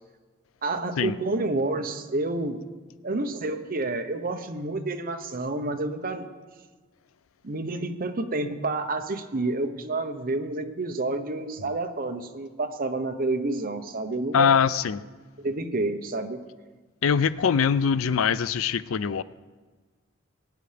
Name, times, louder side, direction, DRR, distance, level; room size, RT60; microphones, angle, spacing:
voice 1, 0.6-2.6 3.0-6.3 7.4-14.5 15.4-16.4, right 2 dB, 45° right, 6 dB, 0.9 m, -29 dB
voice 2, 14.3-15.0 17.0-19.2, left 7 dB, 80° left, 15 dB, 0.4 m, -22 dB
22.0 x 9.2 x 3.4 m, 1.4 s
head